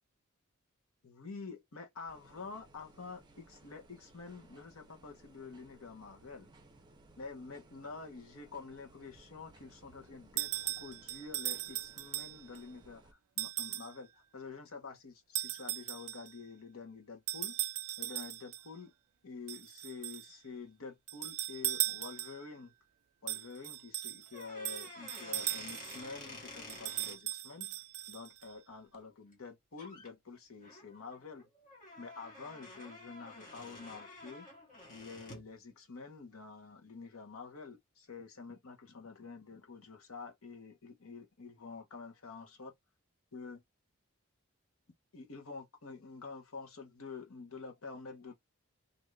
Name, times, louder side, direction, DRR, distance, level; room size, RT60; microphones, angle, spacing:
voice 1, 1.0-6.5 7.2-13.0 13.4-17.6 18.0-18.9 19.2-22.7 23.2-31.5 32.0-34.5 34.9-42.7 43.3-43.6 45.1-48.3, left 4 dB, 70° left, 1.0 m, -48 dB
sound 1, 2.1-13.1, right 2 dB, 20° right, 0.6 m, -61 dB
sound 2, 10.4-12.6 13.4-14.0 15.3-16.4 17.3-18.7 19.5-20.3 21.1-22.5 23.3-26.0 26.7-28.5, right 17 dB, 90° right, 0.4 m, -38 dB
sound 3, 24.3-27.2 29.3-29.5 29.8-30.1 30.6-35.5, left 2 dB, 40° left, 1.2 m, -50 dB
2.6 x 2.5 x 3.2 m
head